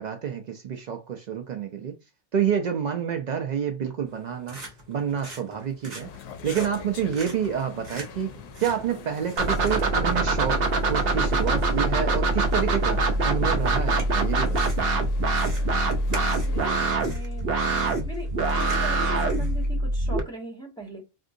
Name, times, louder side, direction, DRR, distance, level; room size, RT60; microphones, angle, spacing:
voice 1, 0.0-2.0 2.3-4.6 4.9-6.1 6.4-8.3 8.6-10.6 10.9-14.8, right 8 dB, 75° right, 0.4 m, -28 dB
sound 1, 4.1-19.7, right 1 dB, 35° right, 1.5 m, -45 dB
sound 2, 6.0-16.7, left 7 dB, 80° left, 0.9 m, -43 dB
sound 3, 9.4-20.2, right 2 dB, 55° right, 0.8 m, -24 dB
voice 2, 16.1-18.3 18.5-21.0, equal, 5° left, 1.5 m, -39 dB
3.6 x 2.6 x 2.5 m
omnidirectional pair, 1.3 m